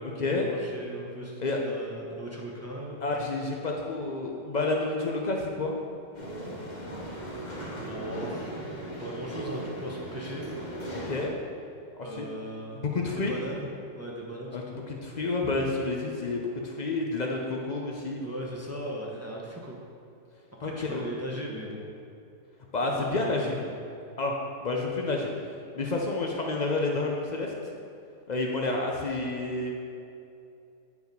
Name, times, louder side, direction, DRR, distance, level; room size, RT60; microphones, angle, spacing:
voice 1, 0.0-3.0 7.8-10.5 12.0-12.8 13.1-14.8 15.4-15.5 18.2-19.8 20.6-21.8 22.8-23.7, equal, 15° right, -3 dB, 0.7 m, -38 dB
voice 2, 3.0-5.7 10.9-11.3 11.9-12.2 12.8-13.3 14.5-18.2 20.6-21.0 22.7-23.6 24.2-24.3 24.6-25.3 25.7-27.5 28.3-29.7, left 3 dB, 80° left, 0 dB, 0.4 m, -29 dB
sound 1, 6.1-11.3, right 1 dB, 30° left, 1.4 m, -37 dB
10.0 x 4.8 x 5.3 m, 2.6 s
omnidirectional pair, 1.8 m